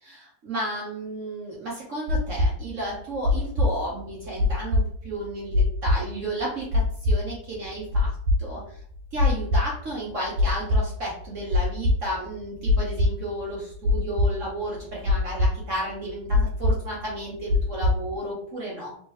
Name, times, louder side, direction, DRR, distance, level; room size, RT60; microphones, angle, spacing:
voice 1, 0.0-8.8 9.1-19.0, right 1 dB, 60° right, -4 dB, 0.8 m, -33 dB
sound 1, 2.1-18.2, left 2 dB, 80° right, 1.4 m, -23 dB
3.5 x 2.9 x 3.1 m, 0.63 s
omnidirectional pair, 2.3 m